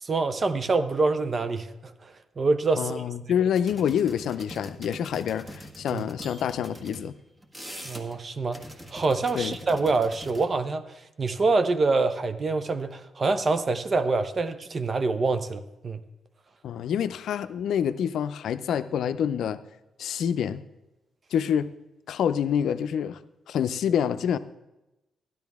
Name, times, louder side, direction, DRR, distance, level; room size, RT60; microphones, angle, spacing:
voice 1, 0.0-3.1 5.9-6.0 7.8-8.6 8.9-16.0, right 3 dB, 45° right, 10 dB, 0.6 m, -26 dB
voice 2, 2.8-7.2 9.3-9.6 16.6-19.6 20.0-20.6 21.3-21.7 22.1-23.2 23.5-24.4, left 8 dB, 75° left, 13 dB, 0.4 m, -27 dB
sound 1, 3.6-7.1 7.4-8.2 8.5-10.5, equal, 20° right, 1.6 m, -44 dB
12.5 x 11.0 x 3.5 m, 0.97 s
cardioid pair, 65°, 0 cm